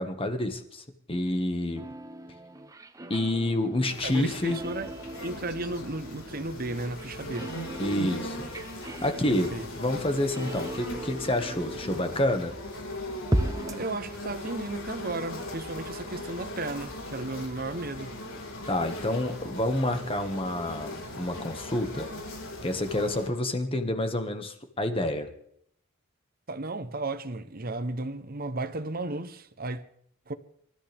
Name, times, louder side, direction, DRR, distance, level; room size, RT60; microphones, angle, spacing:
voice 1, 0.0-1.9 3.1-4.6 7.8-8.5 8.8-12.5 18.7-22.1 22.6-25.3, left 1 dB, 25° left, 1.8 m, -28 dB
sound 1, 1.8-12.6 13.3-13.9, right 1 dB, 15° right, 0.9 m, -37 dB
sound 2, 3.9-23.3, left 1 dB, 70° left, 4.7 m, -39 dB
voice 2, 4.0-4.9 5.2-7.5 9.3-9.7 13.7-18.2 26.5-29.8 30.3-30.4, right 2 dB, 45° right, 1.0 m, -34 dB
26.5 x 13.5 x 3.6 m
head